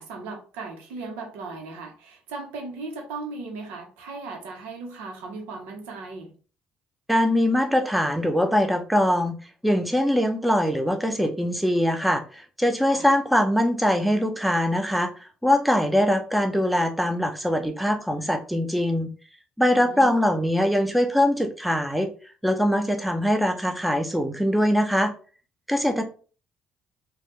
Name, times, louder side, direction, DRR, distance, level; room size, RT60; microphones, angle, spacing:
voice 1, 0.0-6.3 12.9-13.1 19.7-20.1, right 3 dB, 85° right, 2 dB, 0.8 m, -37 dB
voice 2, 7.1-9.4 9.6-19.1 19.6-22.1 22.4-25.1 25.7-26.0, equal, ahead, 6 dB, 0.5 m, -22 dB
3.2 x 2.3 x 2.9 m, 0.38 s
supercardioid pair, 70°, 3 cm